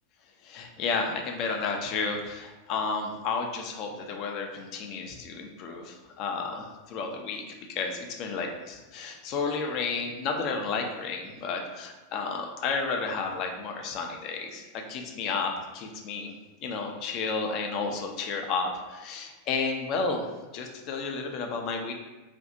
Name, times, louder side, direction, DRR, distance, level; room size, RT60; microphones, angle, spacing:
voice 1, 0.4-16.3 16.6-20.2 20.5-21.9, left 4 dB, 40° left, 3 dB, 0.5 m, -32 dB
2.5 x 2.3 x 3.9 m, 1.2 s
figure-of-eight pair, 90°, 0 cm